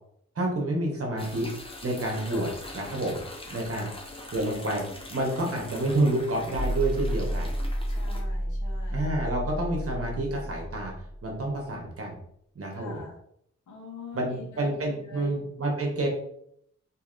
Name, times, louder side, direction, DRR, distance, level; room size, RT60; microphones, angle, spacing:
voice 1, 0.4-1.5 1.8-3.2 3.5-3.9 4.3-4.8 5.1-7.5 8.9-10.9 11.2-12.2 12.5-13.0 14.1-16.1, right 1 dB, 50° right, -1 dB, 1.1 m, -29 dB
sound 1, 1.2-8.2, left 2 dB, 20° left, 0.6 m, -43 dB
voice 2, 2.3-2.6 3.8-4.0 7.9-9.4 12.7-13.1 13.7-15.4, left 3 dB, 80° left, -1 dB, 0.9 m, -45 dB
sound 2, 6.5-11.6, equal, 20° right, 0.9 m, -31 dB
2.8 x 2.7 x 2.5 m, 0.70 s
cardioid pair, 55°, 30 cm